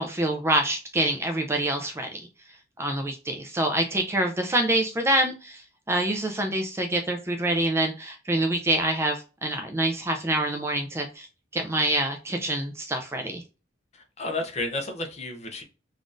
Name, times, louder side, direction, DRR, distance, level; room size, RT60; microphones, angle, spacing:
voice 1, 0.0-2.2 2.8-5.6 5.9-11.3 11.5-13.4, right 1 dB, 15° right, 0.4 m, -26 dB
voice 2, 13.9-15.6, left 2 dB, 35° left, 0.7 m, -32 dB
3.6 x 2.5 x 2.5 m
head